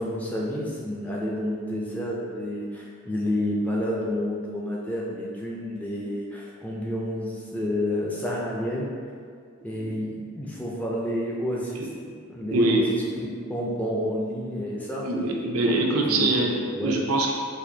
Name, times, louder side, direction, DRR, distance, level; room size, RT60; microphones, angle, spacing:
voice 1, 0.0-8.9 9.6-11.9 12.3-12.9 13.2-15.1 15.6-15.8 16.1-16.3 16.7-17.0, left 1 dB, 5° left, -4 dB, 0.4 m, -29 dB
voice 2, 12.5-12.8 15.0-17.3, right 2 dB, 85° right, 0 dB, 0.5 m, -23 dB
4.2 x 2.6 x 2.7 m, 2.2 s
head